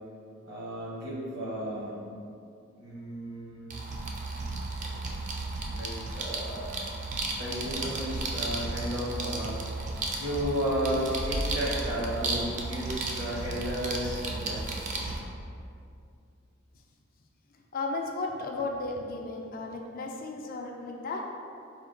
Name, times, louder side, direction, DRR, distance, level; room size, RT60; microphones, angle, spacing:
voice 1, 0.4-2.0 2.8-3.7 4.8-5.0 5.7-6.9 7.4-9.6 10.2-14.7, equal, 55° right, -5 dB, 1.0 m, -33 dB
sound 1, 3.7-15.2, right 2 dB, 35° right, 0.4 m, -34 dB
voice 2, 17.7-21.2, left 3 dB, 45° left, 1 dB, 0.3 m, -34 dB
4.2 x 2.2 x 3.7 m, 2.4 s
head